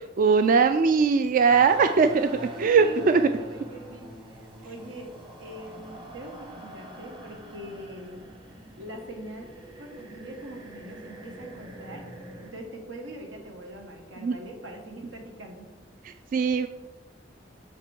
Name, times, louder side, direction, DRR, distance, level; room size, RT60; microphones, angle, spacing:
voice 1, 0.2-2.3 2.6-3.2 14.2-14.4 16.3-16.7, right 5 dB, 45° right, 9 dB, 0.3 m, -20 dB
sound 1, 1.5-12.5, right 1 dB, 25° right, 1.2 m, -44 dB
voice 2, 2.0-8.2 8.8-12.1 12.4-15.7, right 1 dB, 90° right, 2 dB, 1.5 m, -42 dB
6.9 x 5.2 x 4.5 m, 1.1 s
head